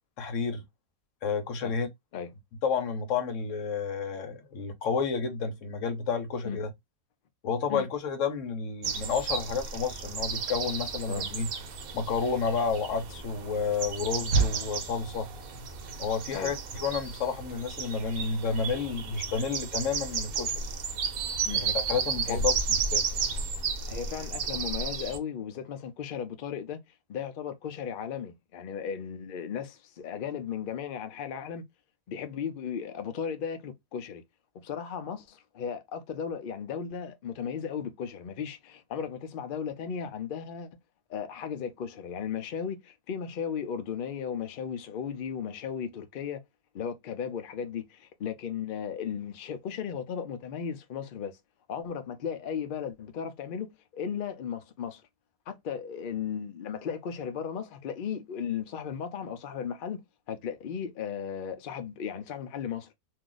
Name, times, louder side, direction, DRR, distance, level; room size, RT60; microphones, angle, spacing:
voice 1, 0.2-0.6 1.2-1.9 2.6-6.7 7.4-11.5 11.9-15.3 16.0-20.5 21.5-23.0, left 5 dB, 60° left, 1.0 m, -30 dB
sound 1, 8.8-25.2, right 5 dB, 70° right, 1.1 m, -32 dB
voice 2, 23.9-26.8 27.1-31.6 32.1-34.2 34.6-40.7 41.1-46.4 46.7-51.4 51.7-55.0 55.5-62.9, left 7 dB, 85° left, 0.4 m, -36 dB
2.7 x 2.4 x 3.8 m
omnidirectional pair, 1.6 m